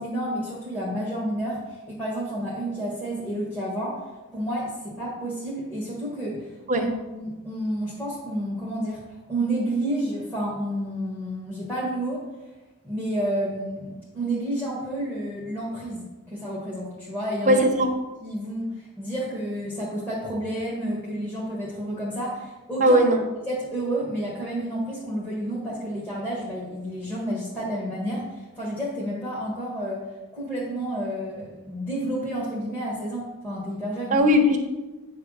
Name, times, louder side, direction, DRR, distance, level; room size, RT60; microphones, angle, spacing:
voice 1, 0.0-4.0 4.3-6.9 7.1-9.0 9.3-12.3 12.8-17.6 18.2-23.0 23.5-30.0 30.3-34.2, right 1 dB, 10° left, -7 dB, 1.6 m, -30 dB
voice 2, 17.5-17.9 22.8-23.2 34.1-34.6, equal, 35° right, 3 dB, 1.1 m, -18 dB
8.9 x 3.6 x 6.4 m, 1.2 s
head